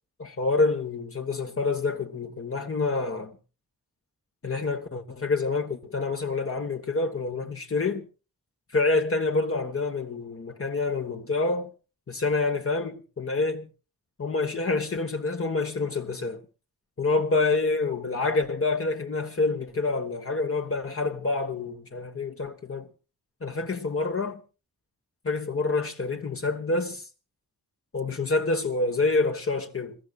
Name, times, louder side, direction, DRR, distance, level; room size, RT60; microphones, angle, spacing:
voice 1, 0.2-3.4 4.4-8.0 8.7-11.7 12.1-13.7 14.2-16.4 17.0-22.9 23.4-24.4 25.2-27.1 27.9-30.0, left 3 dB, 40° left, 1.4 m, -27 dB
27.5 x 13.5 x 2.5 m
wide cardioid pair, 95°, 35 cm